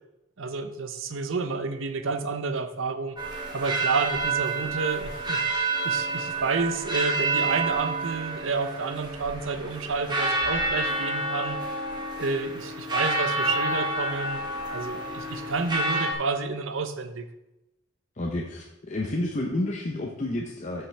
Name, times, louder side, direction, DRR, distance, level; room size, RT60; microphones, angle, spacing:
voice 1, 0.4-3.2 3.5-5.4 5.8-11.6 12.2-14.4 14.7-17.2, right 4 dB, 75° right, 9 dB, 0.7 m, -30 dB
sound 1, 3.2-16.1, right 2 dB, 20° right, 1.4 m, -29 dB
voice 2, 18.2-20.9, left 1 dB, 35° left, -1 dB, 0.7 m, -30 dB
13.0 x 5.7 x 3.4 m, 0.95 s
head